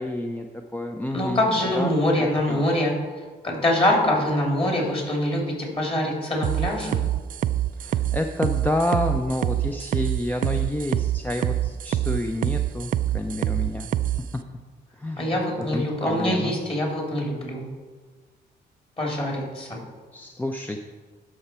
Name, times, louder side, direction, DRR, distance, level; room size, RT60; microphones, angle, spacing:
voice 1, 0.0-1.5 1.7-1.9 2.2-2.6 7.8-13.9 14.3-14.4 15.0-16.5 20.1-20.8, left 1 dB, 10° left, 4 dB, 0.5 m, -29 dB
voice 2, 1.1-2.9 3.4-7.0 15.2-17.6 19.0-19.8, left 1 dB, 30° left, -1 dB, 2.9 m, -24 dB
sound 1, 6.4-14.2, right 12 dB, 50° right, 0.4 m, -25 dB
12.5 x 5.8 x 4.4 m, 1.4 s
cardioid pair, 100°, 18 cm